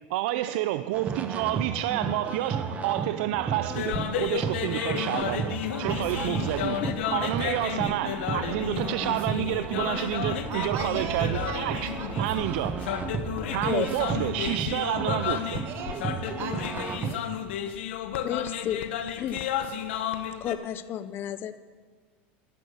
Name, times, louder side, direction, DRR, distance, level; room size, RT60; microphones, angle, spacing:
voice 1, 0.1-6.8 7.0-11.9 12.2-12.8 13.5-15.6, right 15 dB, 70° right, 12 dB, 0.5 m, -29 dB
sound 1, 0.9-17.1, right 5 dB, 25° right, 1.0 m, -34 dB
sound 2, 3.6-20.5, left 9 dB, 85° left, 1.1 m, -33 dB
sound 3, 5.8-14.3, equal, 60° left, 4.1 m, -42 dB
voice 2, 5.8-7.0 7.2-7.7 10.5-11.6 12.0-12.1 12.3-12.8 13.8-14.0 15.6-17.6, right 7 dB, 45° right, 6 dB, 1.9 m, -39 dB
voice 3, 13.4-13.9 18.2-18.8 19.2-19.4 20.4-21.6, left 11 dB, 40° left, 13 dB, 0.6 m, -31 dB
11.5 x 10.5 x 8.1 m, 1.5 s
supercardioid pair, 130°, 6 cm